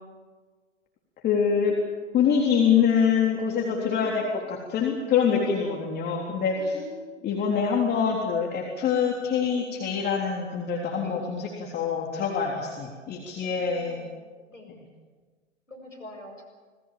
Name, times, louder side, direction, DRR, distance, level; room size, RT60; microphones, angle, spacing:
voice 1, 1.2-1.8 2.1-6.7 7.2-14.0, left 6 dB, 25° left, -1 dB, 3.6 m, -25 dB
voice 2, 3.7-4.3 6.6-7.2 11.0-11.2 13.4-14.1 14.5-14.8 15.7-16.4, left 1 dB, 85° left, 2 dB, 7.6 m, -45 dB
27.0 x 20.0 x 7.6 m, 1.4 s
figure-of-eight pair, 100°, 37 cm